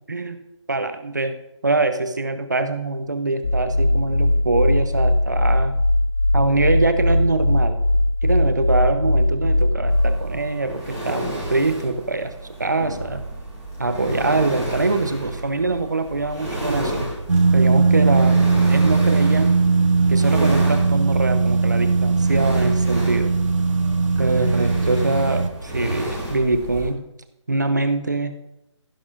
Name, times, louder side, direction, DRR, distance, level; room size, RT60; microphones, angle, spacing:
voice 1, 0.7-1.3 1.6-5.7 6.3-7.8 8.2-12.3 12.6-13.2 13.8-17.1 17.5-18.4 18.7-19.6 20.1-23.3 24.2-27.0 27.5-28.4, right 3 dB, 35° right, 9 dB, 0.7 m, -23 dB
sound 1, 3.4-10.3, left 1 dB, 50° left, 2.2 m, -19 dB
sound 2, 9.9-26.9, right 1 dB, 5° left, 1.2 m, -31 dB
sound 3, 17.3-25.5, right 4 dB, 80° right, 0.9 m, -18 dB
16.0 x 10.5 x 2.5 m, 0.86 s
figure-of-eight pair, 180°, 16 cm